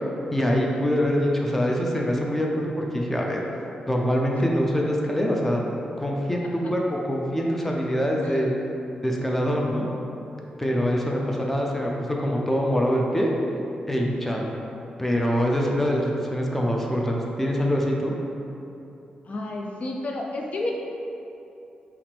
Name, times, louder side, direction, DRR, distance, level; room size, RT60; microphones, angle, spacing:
voice 1, 0.3-3.4 3.9-5.6 6.0-8.6 9.0-9.9 10.6-13.3 13.9-14.5 15.0-18.1, equal, 10° left, -1 dB, 0.6 m, -24 dB
voice 2, 19.2-20.7, left 2 dB, 55° left, 0 dB, 0.5 m, -31 dB
5.7 x 2.5 x 3.4 m, 2.8 s
cardioid pair, 75°, 3 cm